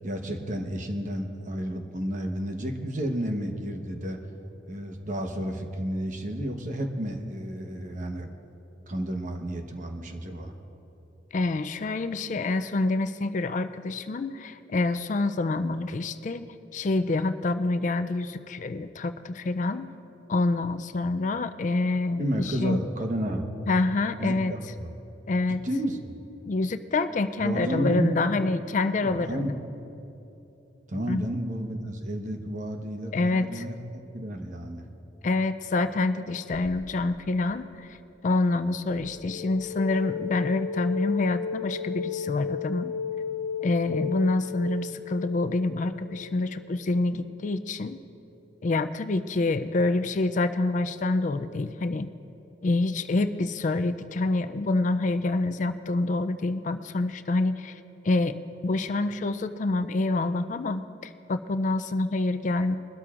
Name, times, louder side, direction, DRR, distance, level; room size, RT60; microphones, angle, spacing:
voice 1, 0.0-4.2 4.7-8.4 8.9-10.5 22.2-23.5 24.2-24.9 25.5-26.2 27.4-28.2 29.0-29.5 30.9-34.8, equal, 45° right, 4 dB, 1.0 m, -31 dB
voice 2, 11.3-16.5 16.7-19.9 20.3-22.8 23.7-24.5 25.3-25.6 26.5-29.4 31.1-31.2 33.1-33.6 35.2-37.9 38.2-42.9 43.6-48.0 48.6-52.1 52.6-57.8 58.0-58.4 58.6-60.8 61.3-62.8, left 2 dB, 45° left, 10 dB, 0.4 m, -27 dB
sound 1, 36.5-37.3 38.9-46.6, left 6 dB, 25° left, 2.5 m, -34 dB
22.0 x 13.0 x 2.5 m, 3.0 s
head